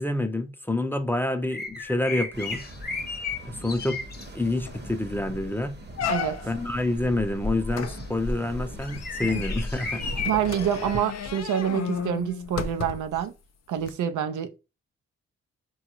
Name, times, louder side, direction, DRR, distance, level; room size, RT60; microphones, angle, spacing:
voice 1, 0.0-2.7 3.4-4.0 4.3-5.8 6.4-10.2, left 2 dB, 5° left, 0.5 m, -28 dB
sound 1, 1.5-4.3 5.1-5.5 6.1-10.8 11.3-11.4 13.2-13.3, left 3 dB, 30° left, 0.8 m, -34 dB
sound 2, 2.3-11.0, right 1 dB, 35° right, 0.9 m, -42 dB
sound 3, 4.2-4.3 4.7-5.0 5.4-5.5 6.0-6.7 7.7-13.2 13.8-13.9, left 6 dB, 55° left, 0.5 m, -34 dB
voice 2, 10.3-13.3 13.7-14.6, right 9 dB, 75° right, 0.5 m, -27 dB
3.7 x 2.3 x 2.9 m
supercardioid pair, 45°, 31 cm